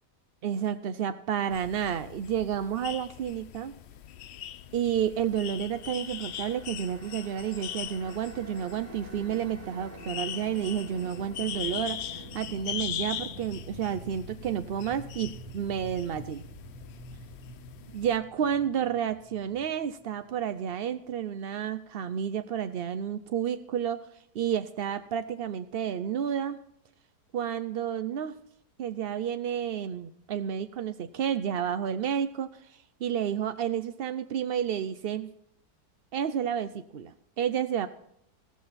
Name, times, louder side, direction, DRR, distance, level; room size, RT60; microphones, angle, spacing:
voice 1, 0.4-3.7 4.7-16.4 17.9-24.0 24.3-26.6 27.3-28.4 28.8-35.3 36.1-37.9, right 9 dB, 70° right, 11 dB, 0.5 m, -31 dB
sound 1, 1.5-18.2, left 10 dB, 65° left, 0.6 m, -41 dB
sound 2, 5.1-20.4, right 1 dB, 25° right, 2.2 m, -47 dB
14.0 x 13.5 x 4.1 m, 0.73 s
omnidirectional pair, 1.7 m